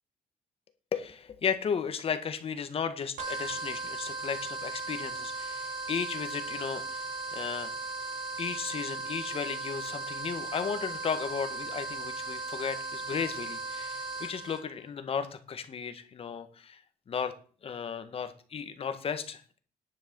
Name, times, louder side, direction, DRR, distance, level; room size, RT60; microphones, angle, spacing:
voice 1, 0.9-7.0 7.3-7.7 8.4-16.8 17.1-17.3 17.6-19.6, left 6 dB, 45° left, 9 dB, 1.8 m, -35 dB
sound 1, 3.2-14.6, right 3 dB, 90° right, 4.5 m, -37 dB
10.5 x 6.8 x 7.1 m, 0.41 s
cardioid pair, 130°, 14 cm